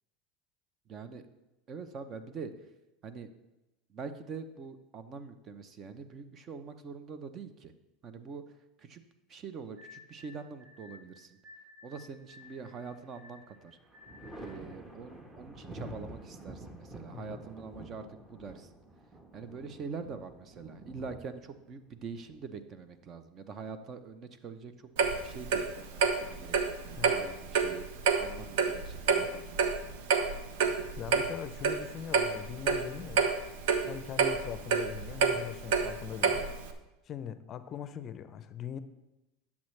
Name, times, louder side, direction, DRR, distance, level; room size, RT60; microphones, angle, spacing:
voice 1, 0.9-1.2 1.7-2.5 3.0-3.3 3.9-7.7 8.0-8.4 8.8-9.0 9.3-11.4 11.8-13.8 14.4-18.7 19.3-26.6 26.8-27.8 28.2-30.2, right 5 dB, 35° right, 10 dB, 0.7 m, -44 dB
sound 1, 9.8-14.6, left 4 dB, 55° right, 2.4 m, -55 dB
Thunder, 12.4-13.2 13.6-23.1 24.6-25.5, right 1 dB, 15° right, 1.2 m, -49 dB
Clock, 25.0-36.7, right 5 dB, 75° right, 0.8 m, -29 dB
voice 2, 31.0-33.3 33.9-36.5 37.1-38.8, left 9 dB, 35° left, 12 dB, 0.5 m, -41 dB
10.0 x 7.1 x 3.2 m, 0.98 s
supercardioid pair, 120°, 0 cm